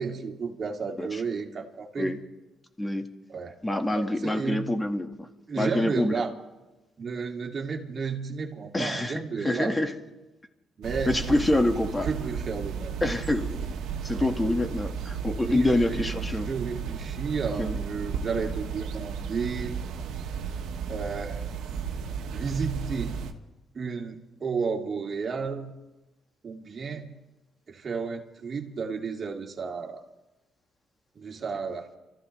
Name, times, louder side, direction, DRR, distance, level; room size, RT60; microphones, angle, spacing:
voice 1, 0.0-2.1 3.3-3.6 3.9-4.7 5.5-6.3 7.0-9.7 10.8-11.6 12.0-13.1 14.1-14.3 15.4-19.7 20.9-21.4 22.3-23.3 23.7-25.7 26.4-27.1 27.7-30.0 31.2-31.9, right 5 dB, 45° right, 1 dB, 2.5 m, -32 dB
voice 2, 3.6-5.3 5.6-6.1 8.7-9.9 11.1-12.1 13.0-13.8 14.0-16.5 17.6-17.8, left 1 dB, 15° left, 5 dB, 1.8 m, -26 dB
sound 1, 10.8-23.3, right 6 dB, 85° right, 1.3 m, -34 dB
29.0 x 14.5 x 3.3 m, 1.0 s
cardioid pair, 90°, 0 cm